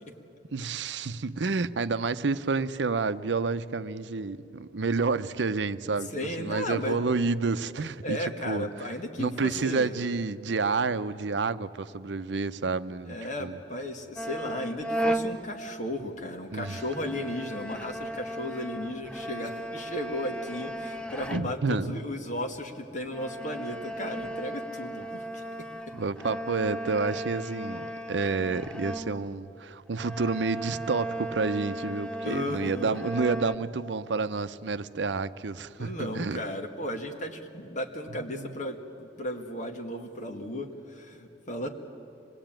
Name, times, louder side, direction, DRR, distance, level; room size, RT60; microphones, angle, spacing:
voice 1, 0.5-8.9 9.2-13.6 16.5-16.8 21.3-22.0 25.9-36.4 38.3-38.5, right 4 dB, 80° right, 0.7 m, -29 dB
voice 2, 6.1-7.0 8.0-10.0 13.1-25.4 32.2-33.0 35.8-41.7, left 1 dB, 45° left, 1.9 m, -35 dB
sound 1, 14.2-16.2 16.5-21.8 22.5-22.6 23.0-29.6 29.9-33.6, right 1 dB, 5° left, 0.7 m, -36 dB
25.5 x 20.0 x 9.0 m
head